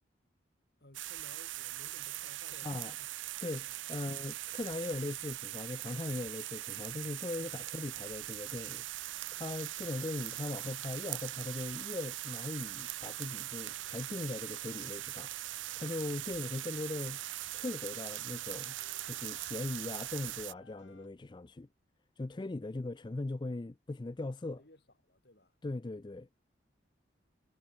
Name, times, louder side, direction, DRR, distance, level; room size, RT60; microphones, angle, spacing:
voice 1, 0.8-3.1 3.7-3.8 22.9-23.1 24.4-25.5, left 1 dB, 60° left, 3.7 m, -59 dB
sound 1, 0.9-20.5, right 15 dB, 90° right, 0.6 m, -41 dB
voice 2, 2.6-2.9 3.4-8.8 9.3-15.3 15.8-17.2 17.5-18.8 19.0-21.7 22.2-24.6 25.6-26.3, left 2 dB, 25° left, 0.4 m, -39 dB
sound 2, 13.3-21.1, left 4 dB, 90° left, 3.2 m, -63 dB
head